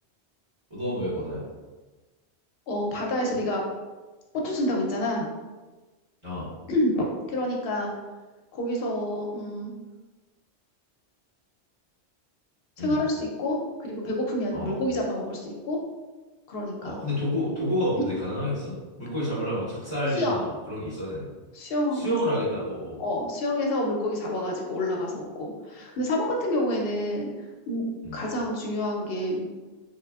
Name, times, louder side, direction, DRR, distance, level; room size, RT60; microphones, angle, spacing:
voice 1, 0.7-1.4 6.2-6.5 12.8-13.0 14.5-14.7 16.8-21.3 21.9-23.0 28.0-28.2, left 1 dB, 25° right, -12 dB, 1.1 m, -29 dB
voice 2, 2.7-3.6 4.3-5.3 6.7-7.9 8.5-9.7 12.8-15.8 16.5-17.0 20.2-20.4 21.5-22.2 23.0-27.3 27.7-29.5, left 1 dB, 65° left, 0 dB, 0.8 m, -28 dB
3.3 x 2.4 x 2.3 m, 1.2 s
omnidirectional pair, 1.2 m